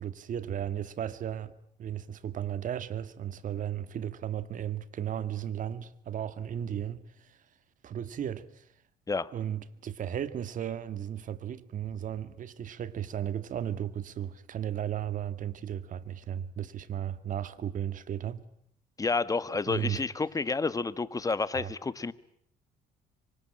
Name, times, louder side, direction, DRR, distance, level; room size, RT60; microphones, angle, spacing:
voice 1, 0.0-1.5 1.8-7.4 7.8-8.7 9.3-18.5 19.7-20.0 21.6-21.7, right 10 dB, 50° right, 1.9 m, -35 dB
voice 2, 19.0-22.1, left 4 dB, 20° left, 1.4 m, -30 dB
26.5 x 24.5 x 8.8 m
cardioid pair, 110°, 17 cm